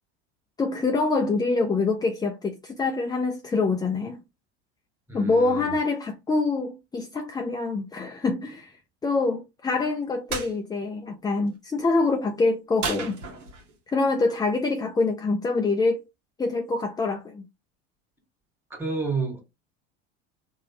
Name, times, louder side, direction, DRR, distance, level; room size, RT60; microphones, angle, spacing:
voice 1, 0.6-4.2 5.1-8.8 9.0-13.2 13.9-16.0 16.4-17.5, left 3 dB, 10° left, 0.4 m, -25 dB
voice 2, 5.1-5.7 18.8-19.4, right 3 dB, 5° right, 1.7 m, -30 dB
sound 1, 10.3-10.5 12.8-13.8, right 4 dB, 85° right, 1.1 m, -32 dB
3.2 x 2.6 x 2.8 m
hypercardioid pair, 85°, 36 cm